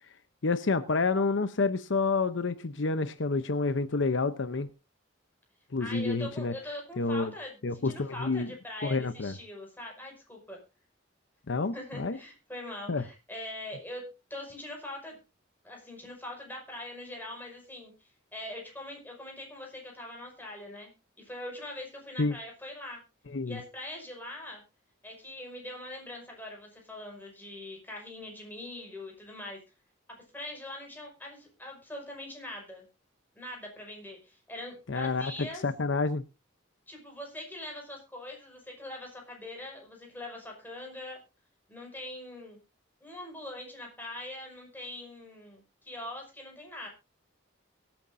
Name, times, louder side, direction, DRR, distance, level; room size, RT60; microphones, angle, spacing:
voice 1, 0.4-4.7 5.7-6.5 7.0-7.3 7.6-8.5 8.8-9.3 11.5-12.2 12.9-13.1 22.2-22.4 23.3-23.6 34.9-36.2, left 3 dB, 65° left, 12 dB, 0.7 m, -29 dB
voice 2, 5.8-10.6 11.7-15.2 15.6-20.9 21.2-23.0 23.4-24.6 25.0-29.6 30.3-32.9 33.3-35.6 36.9-41.2 41.7-42.6 43.0-46.9, left 1 dB, 10° left, 0 dB, 5.5 m, -42 dB
23.5 x 9.0 x 2.6 m, 0.29 s
head